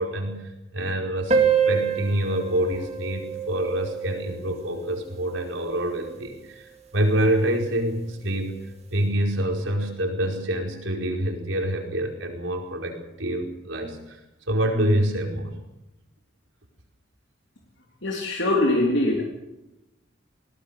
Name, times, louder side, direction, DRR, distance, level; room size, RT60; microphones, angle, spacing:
voice 1, 0.0-1.4 1.7-8.6 8.9-14.2 14.5-15.6, right 1 dB, 70° right, 2 dB, 4.9 m, -26 dB
sound 1, 1.3-6.3, right 6 dB, 30° right, 2.5 m, -27 dB
voice 2, 18.0-19.2, left 1 dB, 60° left, 0 dB, 3.5 m, -22 dB
21.0 x 19.0 x 6.8 m, 0.95 s
head